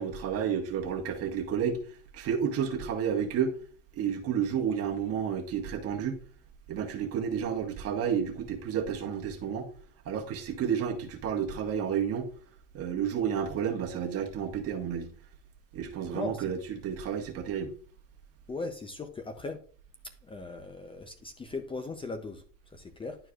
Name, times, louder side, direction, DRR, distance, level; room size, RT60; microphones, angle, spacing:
voice 1, 0.0-1.8 2.1-3.5 3.9-6.2 6.7-9.7 10.0-12.3 12.7-15.1 15.7-17.7, right 7 dB, 45° right, 1.5 m, -31 dB
voice 2, 16.1-16.5 18.5-19.6 20.2-22.4 22.7-23.2, left 3 dB, 15° left, 0.6 m, -38 dB
11.0 x 4.6 x 2.4 m
cardioid pair, 135°, 32 cm